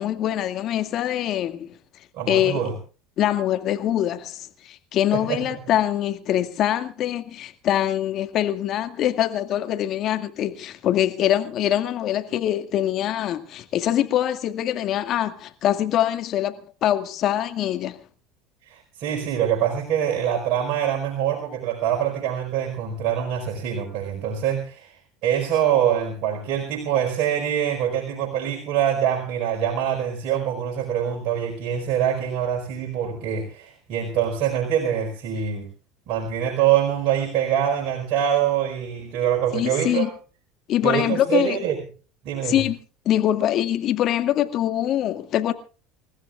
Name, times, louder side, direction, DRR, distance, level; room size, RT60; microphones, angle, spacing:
voice 1, 0.0-1.8 2.3-2.7 3.2-16.5 16.8-18.0 39.5-40.1 40.7-41.6 42.4-42.8 43.1-45.5, left 11 dB, 55° left, 2.1 m, -24 dB
voice 2, 2.1-2.7 5.1-5.6 18.6-35.7 36.1-40.1 40.8-41.8 42.2-42.6, right 9 dB, 60° right, 4.7 m, -24 dB
28.5 x 15.0 x 2.5 m
hypercardioid pair, 80°, 0 cm